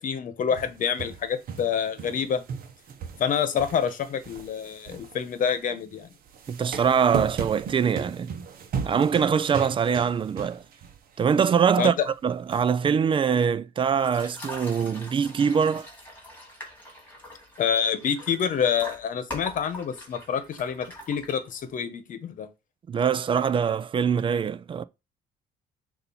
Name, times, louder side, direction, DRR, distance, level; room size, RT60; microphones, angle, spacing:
voice 1, 0.0-2.4 3.2-6.1 11.8-11.9 17.6-22.5, left 7 dB, 50° left, 1.1 m, -27 dB
sound 1, 0.6-2.2 2.5-5.6 6.3-11.0 11.3-11.4 12.5-12.6, right 6 dB, 60° right, 1.0 m, -36 dB
voice 2, 6.5-8.3 8.8-10.6 11.2-15.9 22.9-24.8, right 7 dB, 30° right, 0.4 m, -23 dB
sound 2, 14.0-21.8, left 1 dB, 10° left, 2.4 m, -42 dB
6.7 x 2.8 x 5.6 m
cardioid pair, 110°, 17 cm